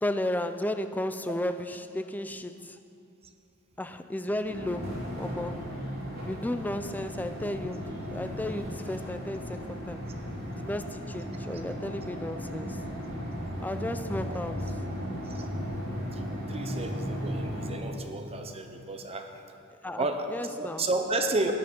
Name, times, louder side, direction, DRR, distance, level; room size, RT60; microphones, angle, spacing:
voice 1, 0.0-2.8 3.8-5.7 6.2-10.1 10.6-12.8 13.6-14.7 19.8-20.8, left 1 dB, 10° left, 10 dB, 0.4 m, -34 dB
sound 1, 4.5-17.7, equal, 50° right, 3.4 m, -36 dB
voice 2, 16.1-19.3 20.0-20.3 20.6-21.5, right 2 dB, 30° right, 5 dB, 0.8 m, -32 dB
13.5 x 10.0 x 5.2 m, 2.6 s
head